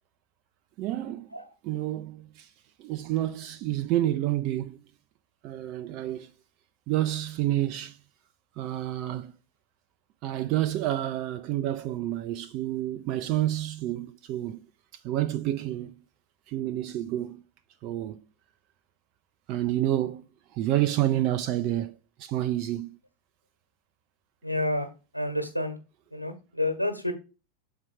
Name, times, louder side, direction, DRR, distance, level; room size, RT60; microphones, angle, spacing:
voice 1, 0.8-1.3 1.6-2.5 2.8-4.8 5.4-6.3 6.9-8.0 8.6-9.3 10.2-14.6 15.0-15.9 16.5-17.4 17.8-18.2 19.5-20.2 20.5-22.9, right 13 dB, 40° right, 0.5 m, -29 dB
voice 2, 24.4-24.9 25.1-25.8 26.1-27.1, left 1 dB, 90° right, 1.4 m, -29 dB
7.3 x 4.6 x 3.4 m
figure-of-eight pair, 90°, 0 cm